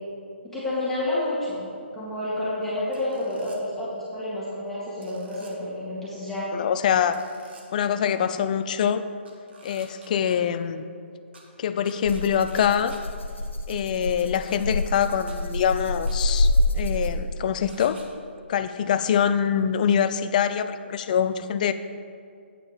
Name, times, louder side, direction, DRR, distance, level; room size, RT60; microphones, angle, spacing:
voice 1, 0.4-6.5, left 1 dB, 5° left, -11 dB, 2.0 m, -29 dB
sound 1, 2.9-3.6 5.0-5.5 7.1-7.6 9.2-10.4 11.3-11.4 11.8-13.0 14.5-14.6 15.0-15.4 15.8-16.2 17.7-18.0, right 3 dB, 60° right, 1.4 m, -50 dB
voice 2, 6.5-7.2 7.7-9.0 9.6-10.9 11.6-13.0 13.7-18.0 18.5-21.7, left 8 dB, 40° left, 11 dB, 0.4 m, -24 dB
Rattle (instrument), 12.0-17.4, left 1 dB, 85° left, 0.9 m, -26 dB
9.0 x 4.3 x 6.6 m, 2.4 s
figure-of-eight pair, 140°, 6 cm